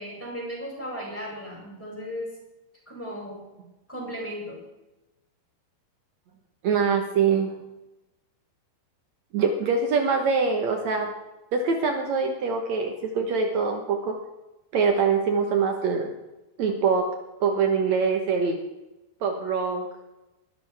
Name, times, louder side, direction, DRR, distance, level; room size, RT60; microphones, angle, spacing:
voice 1, 0.0-2.4 2.9-3.4 3.9-4.6, equal, 5° left, -4 dB, 6.0 m, -36 dB
voice 2, 6.6-7.5 9.3-11.1 11.5-14.1 14.7-16.1 16.6-17.1 17.4-18.6 19.2-19.8, right 5 dB, 80° right, 3 dB, 1.5 m, -24 dB
21.5 x 12.5 x 3.5 m, 1.0 s
omnidirectional pair, 5.2 m